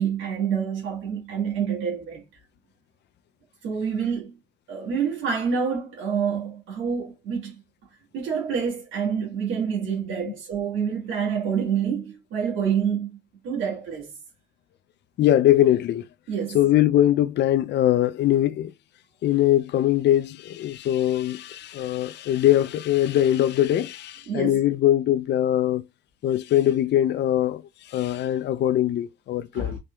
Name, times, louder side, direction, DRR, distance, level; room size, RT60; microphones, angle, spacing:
voice 1, 0.0-2.2 3.6-4.3 4.7-7.6 8.1-13.2 13.4-14.1 16.3-16.6 24.3-24.6 29.5-29.8, right 7 dB, 90° right, 1.8 m, -27 dB
voice 2, 15.2-16.1 16.5-18.7 19.2-25.8 26.2-27.6 27.9-29.8, left 12 dB, 60° left, 0.4 m, -21 dB
4.2 x 3.3 x 2.3 m
cardioid pair, 90°, 20 cm